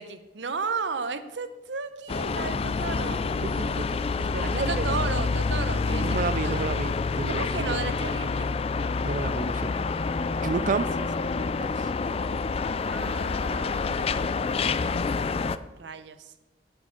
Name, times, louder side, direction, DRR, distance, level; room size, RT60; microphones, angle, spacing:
voice 1, 0.0-3.2 4.5-6.7 7.3-8.5 10.3-11.2 12.8-14.2 15.8-16.3, right 4 dB, 85° right, 11 dB, 0.8 m, -34 dB
sound 1, 2.1-15.6, left 4 dB, 35° left, 0.3 m, -28 dB
voice 2, 3.4-4.9 6.0-7.8 9.0-9.7 10.4-10.9 11.3-11.7, right 4 dB, 45° right, 17 dB, 0.3 m, -31 dB
9.0 x 6.8 x 7.1 m, 1.1 s
head